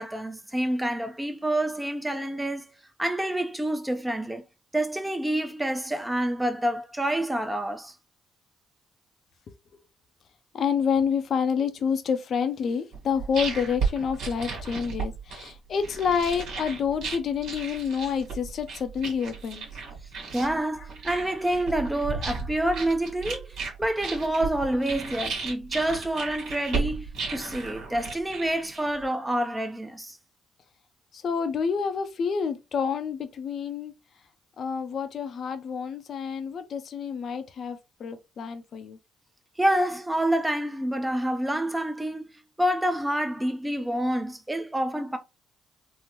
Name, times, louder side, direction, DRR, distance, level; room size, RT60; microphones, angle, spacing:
voice 1, 0.0-2.7 3.0-4.4 4.7-7.9 20.3-30.2 39.6-42.3 42.6-45.2, right 1 dB, 10° right, 0.5 m, -27 dB
voice 2, 10.5-19.7 31.1-33.9 34.6-39.0, left 6 dB, 60° left, 0.5 m, -28 dB
sound 1, 12.9-29.0, right 5 dB, 75° right, 1.3 m, -34 dB
3.6 x 2.1 x 2.9 m
cardioid pair, 90°, 0 cm